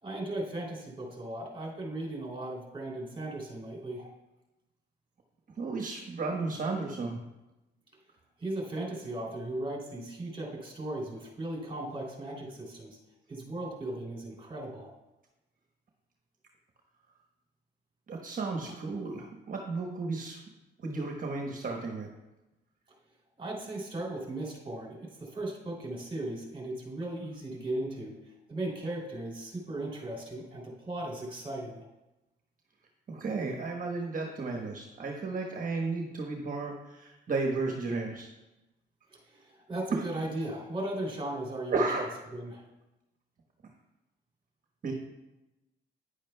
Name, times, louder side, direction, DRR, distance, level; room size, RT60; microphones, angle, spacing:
voice 1, 0.0-4.1 8.4-12.9 13.3-14.9 23.4-31.8 39.1-42.7, right 1 dB, 25° right, -2 dB, 2.9 m, -37 dB
voice 2, 5.6-7.2 18.1-20.4 20.8-22.1 33.1-38.3 39.9-40.0 41.7-42.1 44.8-44.9, right 3 dB, 45° right, 0 dB, 1.2 m, -33 dB
10.5 x 10.0 x 2.3 m, 1.0 s
cardioid pair, 90°, 20 cm